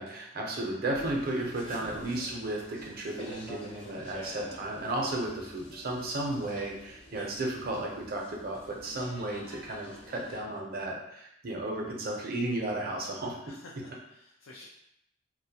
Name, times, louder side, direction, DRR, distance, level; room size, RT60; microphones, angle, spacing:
voice 1, 0.0-13.4, right 1 dB, 50° right, -1 dB, 0.5 m, -34 dB
sound 1, 0.9-10.4, left 1 dB, 25° left, 0.5 m, -49 dB
voice 2, 13.4-14.6, left 2 dB, 85° left, -3 dB, 0.4 m, -50 dB
2.4 x 2.1 x 2.7 m, 0.79 s
head